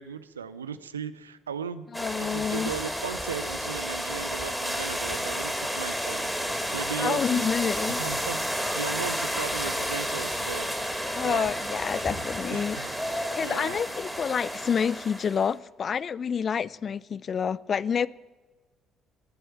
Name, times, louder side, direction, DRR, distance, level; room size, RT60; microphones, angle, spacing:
voice 1, 0.0-1.9 2.2-7.4 8.0-10.7 11.2-11.5 12.5-12.9 13.4-13.8, right 7 dB, 85° right, 0.6 m, -37 dB
voice 2, 1.9-2.7 7.0-8.0 11.2-12.8 13.3-18.1, left 7 dB, 45° left, 0.5 m, -28 dB
sound 1, 1.9-15.5, equal, ahead, 3.4 m, -31 dB
19.5 x 7.9 x 8.6 m
figure-of-eight pair, 50°, 0 cm